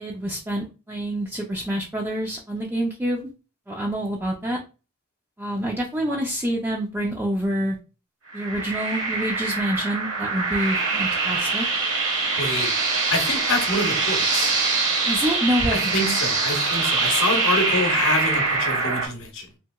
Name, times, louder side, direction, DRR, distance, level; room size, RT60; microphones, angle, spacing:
voice 1, 0.0-3.3 3.7-4.6 5.4-7.8 8.3-11.7 15.1-15.9, equal, 10° right, 0.3 m, -27 dB
sound 1, 8.3-19.1, right 4 dB, 60° right, 0.8 m, -24 dB
voice 2, 12.4-12.7 13.1-14.5 15.7-19.5, left 2 dB, 60° left, 0.8 m, -26 dB
2.8 x 2.7 x 2.2 m
head